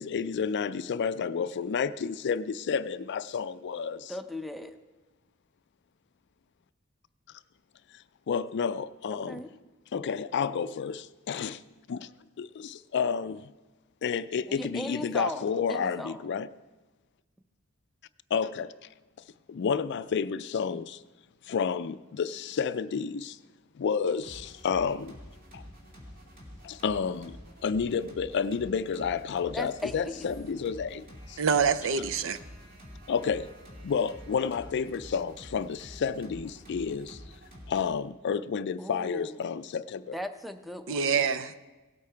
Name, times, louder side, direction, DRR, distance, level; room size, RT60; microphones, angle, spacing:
voice 1, 0.0-4.1 8.3-9.4 9.9-11.6 11.9-12.1 12.4-13.5 14.0-16.5 18.3-18.7 19.5-21.0 21.5-23.4 23.8-25.2 25.5-25.6 26.6-27.4 27.6-31.4 33.1-33.5 33.8-37.2 37.7-40.2, left 6 dB, 55° left, 0.4 m, -30 dB
voice 2, 4.1-4.7 9.1-9.5 14.5-16.2 29.5-30.3 38.8-39.5 40.1-41.2, left 1 dB, ahead, 0.6 m, -38 dB
sound 1, 24.2-37.9, equal, 45° right, 2.5 m, -48 dB
voice 3, 31.4-32.4 40.9-41.6, right 6 dB, 65° right, 0.5 m, -26 dB
17.0 x 8.4 x 4.4 m
head